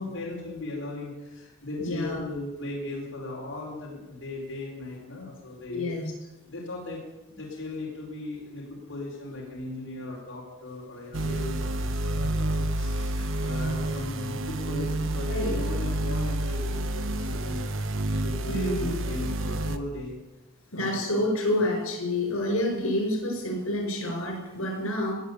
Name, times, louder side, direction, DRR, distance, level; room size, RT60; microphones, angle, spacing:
voice 1, 0.0-6.0 6.5-7.0 7.3-17.6 18.2-20.2 20.7-21.3 21.5-21.7, left 2 dB, 65° left, -4 dB, 4.6 m, -37 dB
voice 2, 1.8-2.2 5.7-6.1 15.3-15.6 18.5-18.9 20.7-25.1, left 1 dB, 85° left, 2 dB, 5.6 m, -28 dB
sound 1, 11.1-19.8, right 1 dB, 70° right, 1.0 m, -29 dB
18.5 x 9.0 x 8.4 m, 1.0 s
head